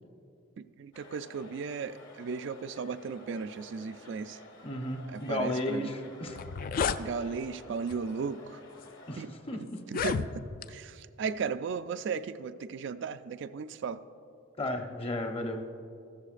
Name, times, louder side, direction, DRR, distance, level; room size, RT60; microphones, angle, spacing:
voice 1, 0.6-4.4 5.1-5.9 7.0-8.6 9.2-9.3 9.9-14.0, right 5 dB, 65° right, 0.4 m, -36 dB
sound 1, 0.9-9.3, left 1 dB, 70° left, 1.5 m, -52 dB
voice 2, 4.6-6.4 9.1-9.8 14.6-15.7, left 1 dB, 30° left, 0.8 m, -34 dB
sound 2, 5.9-6.0 6.3-7.0 7.9-8.1 8.8-8.9 9.8-10.7, left 5 dB, 50° left, 0.3 m, -31 dB
14.0 x 13.0 x 2.5 m
head